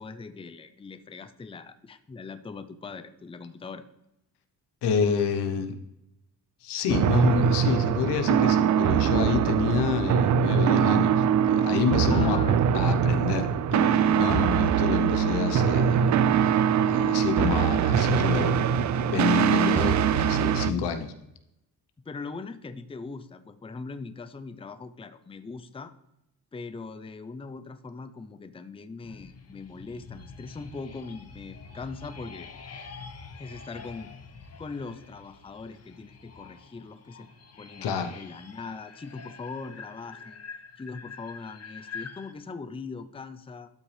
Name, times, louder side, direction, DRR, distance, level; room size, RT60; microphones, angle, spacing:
voice 1, 0.0-3.9 12.1-12.6 22.1-25.9 26.5-32.5 33.4-34.1 34.6-37.3 37.6-40.4 40.8-43.7, left 4 dB, 15° left, 11 dB, 0.5 m, -40 dB
voice 2, 4.8-5.8 6.6-12.4 12.7-18.6 19.1-21.1 37.8-38.1, left 6 dB, 80° left, 7 dB, 1.0 m, -28 dB
sound 1, 6.9-20.7, right 8 dB, 45° right, 0.4 m, -23 dB
sound 2, 29.0-42.3, left 5 dB, 40° left, 1.0 m, -46 dB
12.5 x 5.9 x 3.3 m, 0.86 s
cardioid pair, 90°, 40 cm